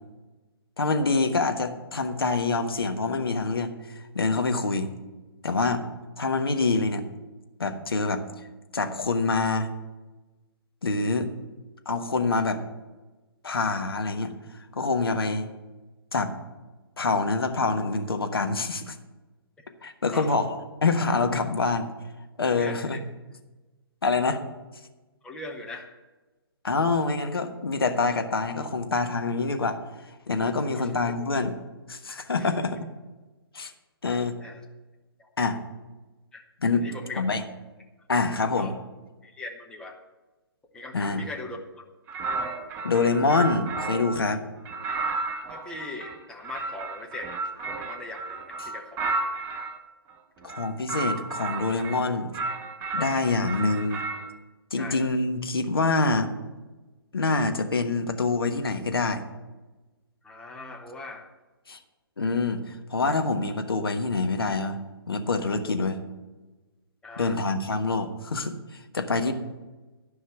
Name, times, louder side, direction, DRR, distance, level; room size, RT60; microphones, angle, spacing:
voice 1, 0.8-4.9 5.4-5.8 6.2-7.1 7.6-8.2 8.7-9.7 10.8-11.3 11.8-12.6 13.4-14.3 14.7-15.5 16.1-16.3 17.0-18.9 19.8-20.5 20.8-21.9 22.4-23.1 24.0-24.4 26.6-29.8 30.3-31.5 31.9-32.8 33.5-33.7 34.0-34.3 35.4-35.6 36.6-36.8 37.2-37.4 38.1-38.7 40.9-41.2 42.8-44.4 50.4-52.3 52.9-54.0 54.7-56.3 57.1-59.2 61.7-61.8 62.2-64.8 65.1-66.0 67.2-69.3, left 3 dB, 65° left, 6 dB, 1.3 m, -26 dB
voice 2, 22.5-23.0 25.2-25.9 30.7-30.9 32.4-32.5 34.4-34.6 35.2-35.3 36.3-36.4 36.8-37.4 38.5-38.7 39.2-40.0 40.7-41.8 45.5-47.3 47.6-49.2 54.8-55.0 60.2-61.3 67.0-67.4, left 2 dB, 5° left, 1 dB, 1.1 m, -40 dB
sound 1, 42.1-44.2 44.7-49.8 50.4-52.0 52.3-54.3, right 3 dB, 15° right, 0.8 m, -32 dB
13.5 x 5.5 x 7.9 m, 1.2 s
figure-of-eight pair, 130°, 13 cm